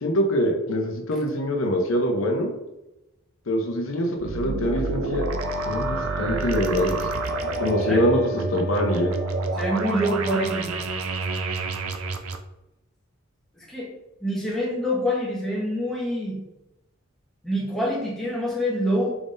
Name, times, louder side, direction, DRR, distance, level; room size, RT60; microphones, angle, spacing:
voice 1, 0.0-2.5 3.5-5.3 5.6-7.0 7.6-9.1, equal, 75° left, 2 dB, 0.7 m, -24 dB
sound 1, 4.2-12.4, right 3 dB, 90° right, 0.5 m, -29 dB
Wind instrument woodwind instrument, 5.3-9.6, left 1 dB, 35° left, 1.0 m, -33 dB
voice 2, 9.5-10.7 13.5-13.9 14.2-16.4 17.4-19.2, equal, ahead, -6 dB, 1.1 m, -26 dB
4.8 x 3.6 x 2.6 m, 0.94 s
head